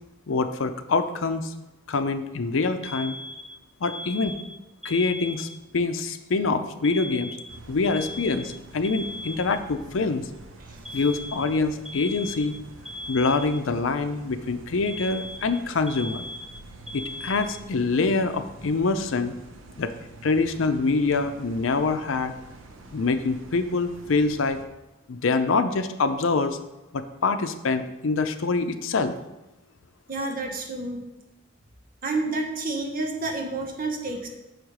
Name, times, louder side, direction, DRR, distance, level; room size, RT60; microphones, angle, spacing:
voice 1, 0.3-1.5 1.9-3.2 3.8-4.3 4.8-5.5 5.7-7.4 7.7-10.3 10.9-12.6 13.1-16.3 16.9-19.3 19.8-19.9 20.2-22.3 22.9-24.6 25.1-26.6 26.9-29.1, left 3 dB, 80° left, 9 dB, 0.5 m, -25 dB
Alarm, 2.8-5.8 6.8-9.8 10.8-13.8 14.9-17.8, left 1 dB, 5° right, 0.4 m, -38 dB
sound 1, 7.5-24.6, right 2 dB, 80° right, 0.7 m, -47 dB
voice 2, 10.6-11.0 30.1-31.0 32.0-34.3, right 2 dB, 45° right, 2 dB, 1.1 m, -30 dB
6.3 x 5.1 x 4.7 m, 0.98 s
head